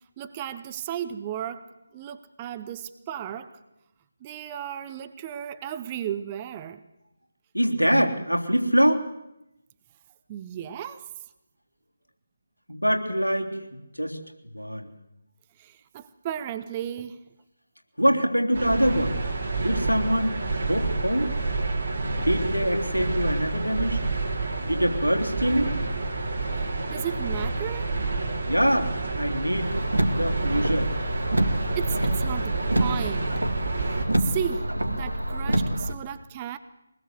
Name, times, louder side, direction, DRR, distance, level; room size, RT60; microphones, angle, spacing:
voice 1, 0.2-3.6 4.2-6.8 10.3-11.1 15.6-17.2 26.5-27.9 31.7-33.4 33.9-36.6, right 10 dB, 20° right, 11 dB, 0.9 m, -35 dB
voice 2, 7.5-9.1 12.7-13.7 13.9-14.2 14.5-14.9 18.0-19.2 19.6-21.3 22.2-24.0 24.6-25.8 28.4-29.7 30.1-30.9, equal, 90° left, 3 dB, 3.5 m, -24 dB
sound 1, 18.5-34.1, right 3 dB, 45° right, 4.7 m, -29 dB
Car, 29.6-35.9, right 1 dB, 75° right, 2.3 m, -27 dB
24.0 x 20.0 x 8.1 m, 0.89 s
figure-of-eight pair, 155°, 0 cm